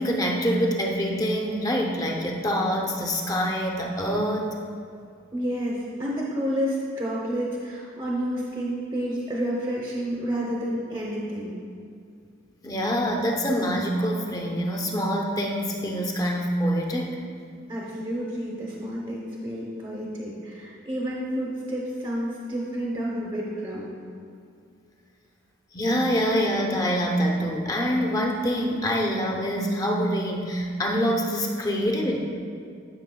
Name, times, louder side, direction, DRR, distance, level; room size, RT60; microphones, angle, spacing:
voice 1, 0.0-4.5 12.6-17.2 25.7-32.2, equal, 20° left, 0 dB, 0.6 m, -25 dB
voice 2, 5.3-11.6 17.7-24.0, equal, 25° right, -4 dB, 0.8 m, -30 dB
12.5 x 5.9 x 2.2 m, 2.3 s
head